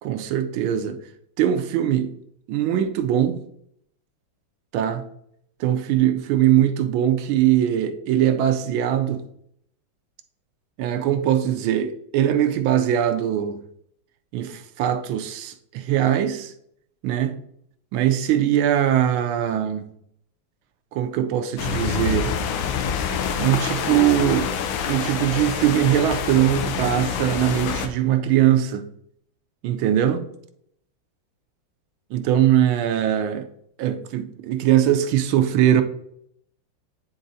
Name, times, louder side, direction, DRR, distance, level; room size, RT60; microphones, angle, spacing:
voice 1, 0.0-1.0 1.4-2.1 2.5-3.4 4.7-5.0 5.6-9.2 10.8-13.6 14.3-16.5 17.0-17.4 17.9-19.9 20.9-22.3 23.4-24.5 24.9-28.9 29.6-30.3 32.1-33.5 33.8-35.8, right 11 dB, 85° right, 1.4 m, -21 dB
sound 1, 21.6-27.9, left 6 dB, 75° left, 1.4 m, -26 dB
9.8 x 3.9 x 2.6 m
omnidirectional pair, 2.2 m